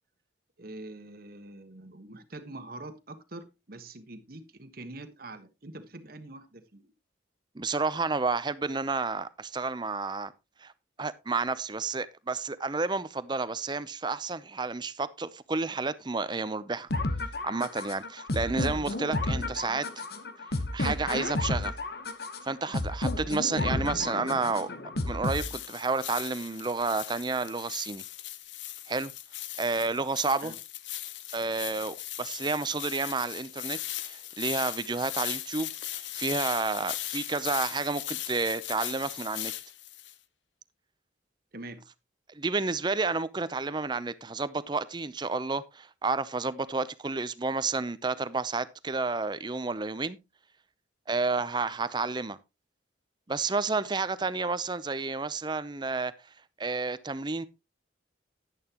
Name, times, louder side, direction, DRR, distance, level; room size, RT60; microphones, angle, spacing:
voice 1, 0.6-6.9 30.4-30.6 41.5-41.8, right 2 dB, 50° right, 1.4 m, -44 dB
voice 2, 7.5-10.3 10.6-10.7 11.0-16.9 17.4-19.8 20.7-21.7 22.4-24.7 25.1-28.0 28.9-29.1 29.6-30.5 31.3-35.7 36.1-39.5 42.3-50.2 51.1-52.4 53.3-56.1 56.6-57.5, right 3 dB, 25° right, 0.6 m, -30 dB
sound 1, 16.9-25.9, left 2 dB, 55° left, 1.1 m, -32 dB
sound 2, 25.2-40.1, left 13 dB, 80° left, 0.8 m, -38 dB
11.0 x 10.5 x 2.9 m
head